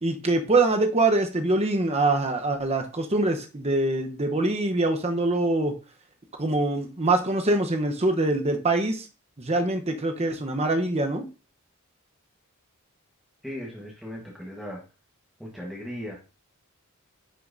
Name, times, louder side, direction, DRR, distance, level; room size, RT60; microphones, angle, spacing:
voice 1, 0.0-5.7 6.4-9.0 9.4-11.3, right 2 dB, 30° right, 5 dB, 0.9 m, -24 dB
voice 2, 13.4-14.8 15.4-16.2, equal, ahead, -4 dB, 1.3 m, -37 dB
9.9 x 5.8 x 2.6 m, 0.33 s
head